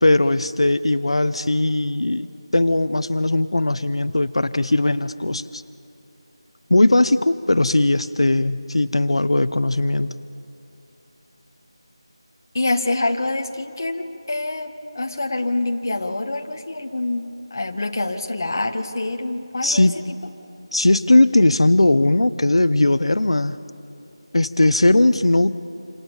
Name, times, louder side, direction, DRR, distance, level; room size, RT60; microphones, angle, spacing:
voice 1, 0.0-2.3 2.5-5.6 6.7-10.1 19.6-19.9 20.7-23.6 24.3-25.6, left 2 dB, 85° left, 12 dB, 0.9 m, -18 dB
voice 2, 12.5-19.9, left 2 dB, 35° left, 3 dB, 1.7 m, -26 dB
28.0 x 27.0 x 7.4 m, 2.9 s
figure-of-eight pair, 180°, 3 cm